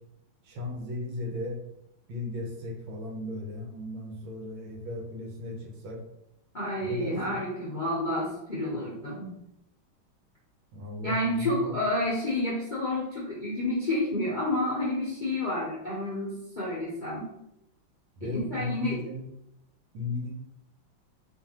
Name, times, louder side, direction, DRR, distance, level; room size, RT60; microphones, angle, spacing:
voice 1, 0.4-1.6 2.1-6.0 6.8-7.4 10.7-11.8 18.2-19.2 19.9-20.3, left 2 dB, 70° right, 0 dB, 1.5 m, -36 dB
voice 2, 6.5-9.3 11.0-17.3 18.2-19.0, left 1 dB, 65° left, -8 dB, 0.4 m, -30 dB
4.5 x 2.7 x 2.8 m, 0.82 s
omnidirectional pair, 2.4 m